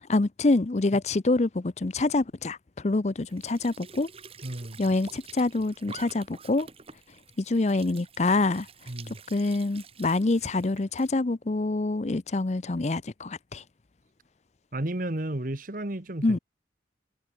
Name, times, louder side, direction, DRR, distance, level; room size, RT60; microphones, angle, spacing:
voice 1, 0.1-4.1 4.8-6.7 7.4-8.7 9.3-13.6 16.2-16.4, left 2 dB, 40° left, 0.6 m, -26 dB
Squeak / Sink (filling or washing) / Trickle dribble, 3.2-11.1, right 5 dB, 35° right, 4.5 m, -48 dB
voice 2, 4.4-4.8 8.9-9.2 14.7-16.4, right 1 dB, 50° right, 1.5 m, -33 dB
head